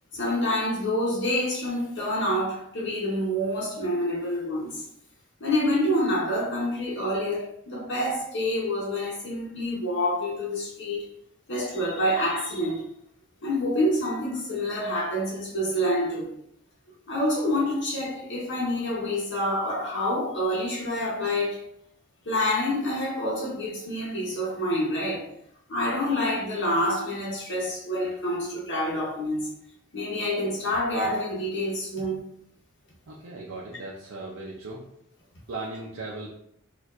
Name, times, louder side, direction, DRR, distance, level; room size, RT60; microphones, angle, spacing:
voice 1, 0.1-4.8 5.4-11.1 11.5-12.8 13.4-16.3 17.1-21.6 22.3-25.3 25.7-29.5 29.9-32.2, left 1 dB, 60° left, -5 dB, 0.9 m, -27 dB
voice 2, 33.1-34.8 35.5-36.3, right 2 dB, 70° right, -3 dB, 0.6 m, -37 dB
4.4 x 2.5 x 2.4 m, 0.74 s
head